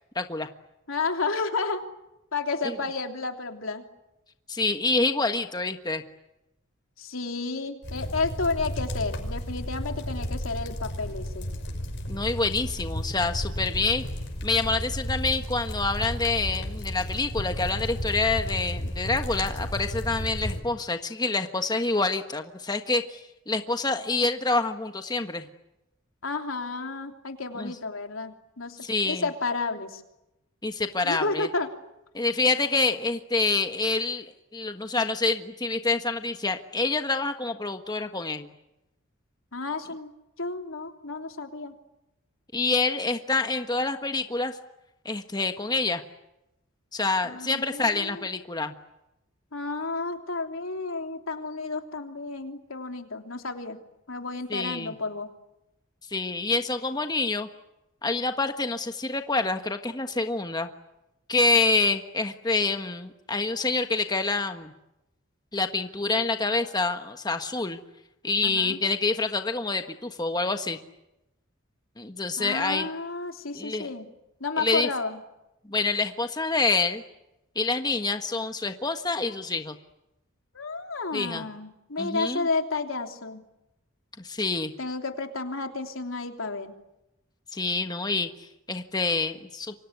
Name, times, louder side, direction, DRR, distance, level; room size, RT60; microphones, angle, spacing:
voice 1, 0.1-0.5 2.6-2.7 4.5-6.0 12.1-14.0 14.4-23.2 23.5-25.5 27.6-27.7 28.8-29.3 30.6-31.5 32.1-38.5 42.5-44.6 45.0-46.0 46.9-48.7 54.5-54.9 56.1-57.5 58.0-60.7 61.3-64.7 65.5-67.8 68.2-70.8 72.0-72.9 73.5-73.9 74.6-74.9 75.7-77.0 77.5-79.7 81.1-81.5 82.0-82.5 84.2-84.7 87.5-89.8, left 3 dB, 20° left, 7 dB, 1.4 m, -27 dB
voice 2, 0.9-1.8 2.3-3.8 7.0-11.5 26.2-28.8 29.0-30.0 31.0-31.7 39.5-40.1 40.4-41.7 47.2-48.3 49.5-53.8 54.1-55.3 68.4-68.8 72.4-74.1 74.4-75.2 80.5-83.4 84.8-86.7, left 3 dB, 85° left, 5 dB, 3.2 m, -31 dB
sound 1, 7.8-20.6, equal, 60° left, 5.9 m, -33 dB
28.0 x 25.0 x 8.2 m, 0.91 s
head